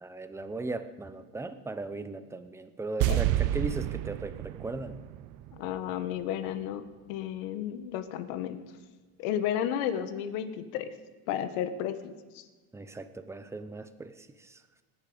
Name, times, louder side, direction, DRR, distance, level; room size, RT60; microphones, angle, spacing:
voice 1, 0.0-5.0 12.7-14.6, right 2 dB, 5° right, 10 dB, 0.7 m, -38 dB
sound 1, 3.0-6.2 6.5-6.6, right 15 dB, 45° right, 0.5 m, -30 dB
voice 2, 5.6-6.8 7.1-8.6 9.2-10.9 11.3-12.4, left 10 dB, 65° left, 11 dB, 1.5 m, -32 dB
25.0 x 10.5 x 5.1 m, 1.3 s
supercardioid pair, 135°, 45 cm